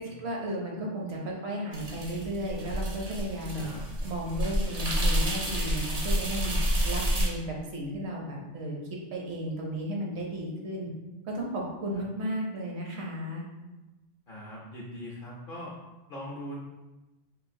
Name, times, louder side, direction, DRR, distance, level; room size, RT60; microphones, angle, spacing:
voice 1, 0.0-3.7 4.0-6.5 6.8-8.8 9.1-10.9 11.3-13.4, right 1 dB, 65° right, -2 dB, 1.0 m, -34 dB
sound 1, 1.7-7.3, equal, 45° right, 0.5 m, -29 dB
voice 2, 14.3-15.8 16.1-16.6, equal, 55° left, -3 dB, 0.6 m, -41 dB
3.7 x 2.4 x 2.6 m, 1.1 s
omnidirectional pair, 1.3 m